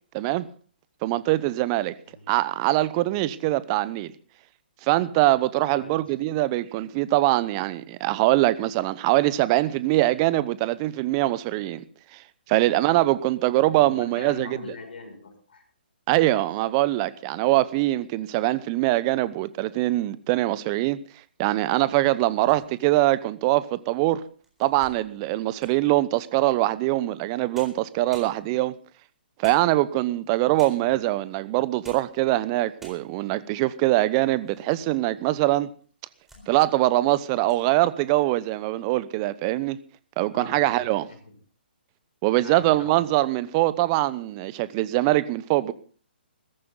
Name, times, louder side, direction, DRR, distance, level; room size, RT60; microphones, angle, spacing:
voice 1, 0.1-0.5 1.0-1.9 2.3-4.1 4.8-11.8 12.1-12.2 12.5-14.6 16.1-21.0 21.4-24.2 24.6-28.7 29.4-35.7 36.5-39.8 40.2-41.1 42.2-45.7, right 17 dB, 30° right, 0.8 m, -23 dB
voice 2, 5.7-6.2 12.5-12.7 13.6-15.6 17.4-17.5 22.5-22.6 30.5-30.8 36.3-36.5 40.3-41.4 42.4-43.0, left 3 dB, 65° left, 6.3 m, -43 dB
sound 1, 22.2-23.0 23.6-23.7 24.2-25.9 27.2-27.3 27.5-28.8 29.4-30.1 30.6-31.0 31.6-32.2 32.5-32.6 32.8-33.4 33.9-34.7 35.0-35.1 35.8-36.5 36.8-37.1 37.4-37.7, right 1 dB, 5° right, 4.0 m, -51 dB
17.0 x 14.5 x 3.9 m
figure-of-eight pair, 130°, 6 cm